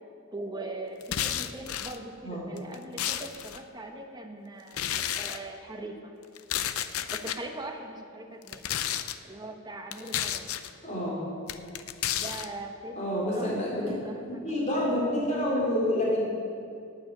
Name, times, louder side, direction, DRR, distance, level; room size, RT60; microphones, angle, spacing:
voice 1, 0.3-6.1 7.1-8.7 9.2-10.6 12.1-13.5 13.8-14.4, right 2 dB, 20° right, 3 dB, 1.3 m, -41 dB
sound 1, 1.0-2.0 2.6-3.6 4.7-5.4 6.4-7.4 8.4-9.2 9.9-10.7 11.5-12.5, left 10 dB, 90° left, 0.6 m, -31 dB
voice 2, 10.8-11.2 13.0-13.8 14.4-16.2, left 1 dB, 35° left, -5 dB, 3.6 m, -28 dB
11.5 x 9.1 x 9.1 m, 2.4 s
head